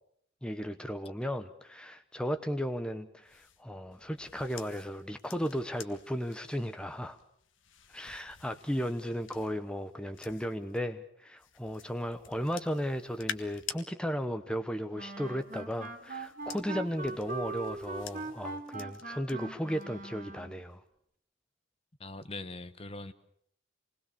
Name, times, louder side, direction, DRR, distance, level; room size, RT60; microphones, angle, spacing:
voice 1, 0.4-7.2 7.9-20.8, equal, 5° left, 1.0 m, -35 dB
sound 1, 3.2-10.8 11.4-13.8 15.1-19.3 19.7-20.1, left 8 dB, 80° left, 1.7 m, -49 dB
Wind instrument woodwind instrument, 14.9-20.6, right 3 dB, 45° right, 2.7 m, -41 dB
voice 2, 22.0-23.1, left 2 dB, 30° left, 1.1 m, -41 dB
28.0 x 20.5 x 6.9 m
head